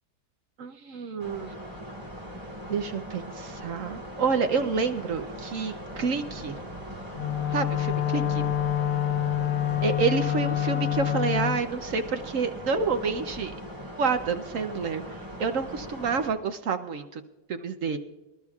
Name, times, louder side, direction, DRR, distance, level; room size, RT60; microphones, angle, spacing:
voice 1, 0.6-1.5 2.7-6.5 7.5-8.4 9.8-13.5 14.0-17.2 17.5-18.0, right 5 dB, 60° right, 8 dB, 0.9 m, -28 dB
sound 1, 1.2-16.3, equal, 20° right, 2.6 m, -40 dB
Wind instrument woodwind instrument, 7.1-11.6, left 11 dB, 60° left, 1.0 m, -27 dB
25.0 x 12.5 x 2.4 m, 1.1 s
omnidirectional pair, 1.8 m